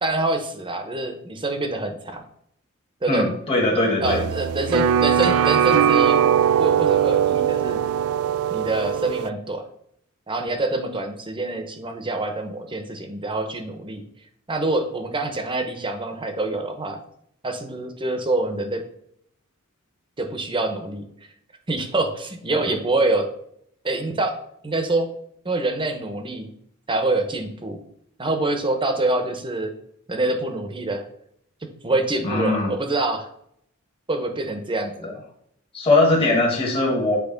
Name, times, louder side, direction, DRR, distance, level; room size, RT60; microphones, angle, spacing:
voice 1, 0.0-2.2 3.0-3.3 4.0-6.2 6.6-7.8 8.5-9.6 10.3-14.0 14.5-17.0 17.4-18.8 20.2-21.1 21.7-23.3 23.8-24.4 24.6-25.1 25.4-26.5 26.9-27.8 28.2-29.7 30.1-31.1 31.6-33.3 34.1-35.2, right 2 dB, 25° right, 6 dB, 0.9 m, -25 dB
voice 2, 3.1-4.2 32.2-32.7 35.7-37.2, left 2 dB, 25° left, -3 dB, 1.4 m, -20 dB
sound 1, 4.0-9.3, right 9 dB, 75° right, 0.3 m, -20 dB
8.2 x 3.2 x 5.1 m, 0.70 s
head